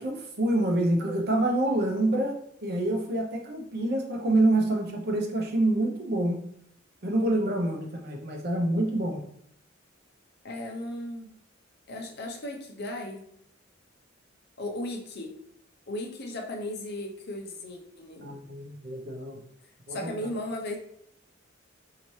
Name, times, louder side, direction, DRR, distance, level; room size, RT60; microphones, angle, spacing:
voice 1, 0.0-6.4 7.0-9.2 18.2-19.4 19.9-20.1, right 1 dB, 55° right, 1 dB, 0.7 m, -27 dB
voice 2, 10.4-11.3 11.9-13.3 14.6-15.3 15.9-18.3 19.9-20.8, left 1 dB, 55° left, 2 dB, 0.7 m, -36 dB
4.2 x 2.8 x 3.1 m, 0.69 s
head